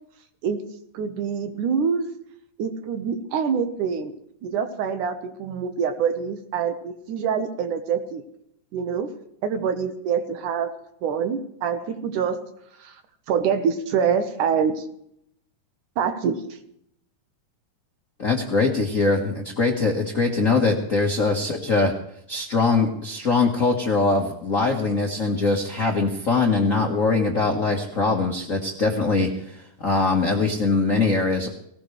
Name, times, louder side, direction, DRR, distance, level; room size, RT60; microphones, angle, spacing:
voice 1, 0.9-2.1 2.6-4.1 4.4-8.2 8.7-9.1 9.4-10.7 11.0-12.4 12.8-13.0 13.3-14.8 16.0-16.4, right 6 dB, 75° right, 8 dB, 2.6 m, -25 dB
voice 2, 18.2-21.9 22.3-31.5, left 3 dB, 50° left, 0 dB, 0.9 m, -22 dB
18.5 x 18.5 x 3.3 m, 0.74 s
omnidirectional pair, 3.8 m